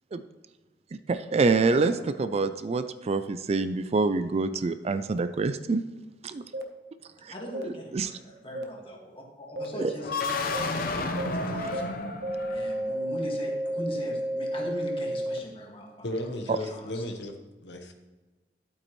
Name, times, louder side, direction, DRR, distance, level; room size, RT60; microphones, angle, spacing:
voice 1, 1.1-5.8 6.2-6.4 7.2-7.3 7.9-8.1 9.8-9.9 16.5-16.6, right 3 dB, 35° right, 11 dB, 0.4 m, -26 dB
voice 2, 1.7-2.2 7.3-10.2 10.5-10.8 11.3-12.0 12.5-16.2 16.6-17.0, equal, 30° left, -1 dB, 1.9 m, -40 dB
sound 1, 6.5-6.6 7.5-7.6 8.5-8.6 9.6-9.7 10.5-10.6 11.2-11.3 11.7-11.8 12.2-15.4, right 1 dB, 70° right, 0.9 m, -31 dB
sound 2, 10.0-13.0, left 3 dB, 55° left, 0.9 m, -31 dB
voice 3, 16.0-17.9, left 1 dB, 80° left, 5 dB, 1.1 m, -35 dB
11.5 x 8.4 x 3.1 m, 1.2 s
head